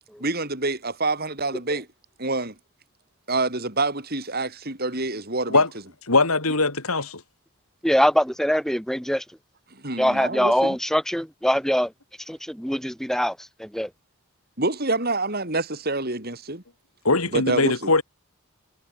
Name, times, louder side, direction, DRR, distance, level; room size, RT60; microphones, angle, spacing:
voice 1, 0.2-1.9 2.2-2.5 3.3-5.6 9.7-10.8 14.6-16.6 17.3-17.9, right 2 dB, 45° right, 6.6 m, -27 dB
voice 2, 6.1-7.2 17.0-18.0, left 3 dB, 80° left, 4.8 m, -21 dB
voice 3, 7.8-9.2 10.0-11.9 12.3-13.9, equal, ahead, 5.0 m, -23 dB
head